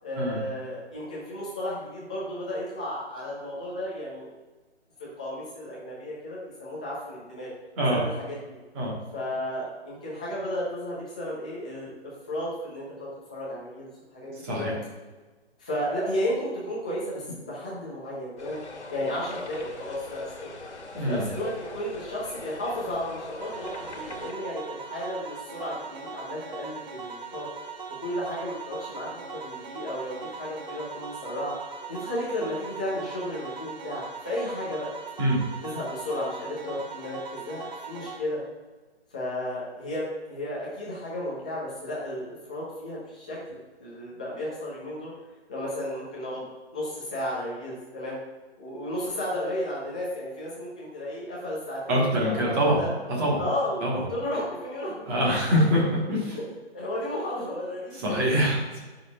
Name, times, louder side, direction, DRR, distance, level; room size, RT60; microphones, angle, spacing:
voice 1, 0.0-4.3 5.0-7.5 7.9-8.6 9.1-14.7 15.6-18.6 18.9-20.2 20.9-27.5 28.0-31.5 31.9-34.9 35.6-38.4 39.1-45.1 45.5-46.5 46.7-48.2 48.6-52.9 53.4-53.8 54.1-55.2 55.5-55.6 56.2-56.4 56.7-58.2, left 1 dB, 5° left, -7 dB, 0.6 m, -33 dB
voice 2, 14.4-14.7 20.9-21.3 35.2-35.4 51.9-52.8 53.1-53.4 53.8-54.0 55.1-56.4 58.0-58.8, equal, 15° right, -4 dB, 1.4 m, -24 dB
sound 1, 18.4-24.3, left 3 dB, 85° left, 1.7 m, -42 dB
sound 2, 23.4-38.2, right 5 dB, 40° right, 0.9 m, -40 dB
13.5 x 6.3 x 2.4 m, 1.3 s
hypercardioid pair, 165°, 33 cm